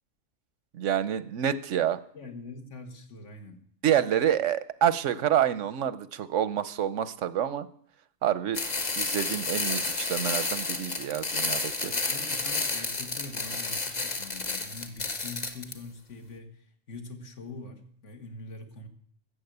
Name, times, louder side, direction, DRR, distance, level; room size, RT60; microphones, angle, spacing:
voice 1, 0.7-2.0 3.8-7.7 8.2-8.6 9.0-11.9, right 10 dB, 90° right, 15 dB, 1.1 m, -27 dB
voice 2, 2.1-3.6 11.9-18.9, left 2 dB, 75° left, 5 dB, 1.9 m, -44 dB
sound 1, 8.5-15.7, left 3 dB, 35° left, 1.3 m, -31 dB
14.0 x 7.5 x 8.0 m, 0.62 s
omnidirectional pair, 1.2 m